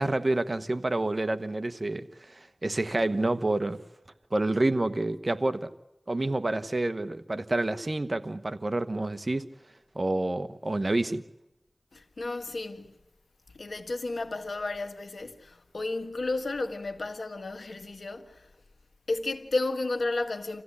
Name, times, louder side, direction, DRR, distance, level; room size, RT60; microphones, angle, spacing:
voice 1, 0.0-3.8 4.3-5.7 6.1-9.5 9.9-11.2, right 2 dB, 50° right, 1.2 m, -28 dB
voice 2, 11.9-12.9 13.5-18.5 19.1-20.6, left 2 dB, 85° left, 1.6 m, -32 dB
27.0 x 15.5 x 9.8 m
wide cardioid pair, 40°, 0 cm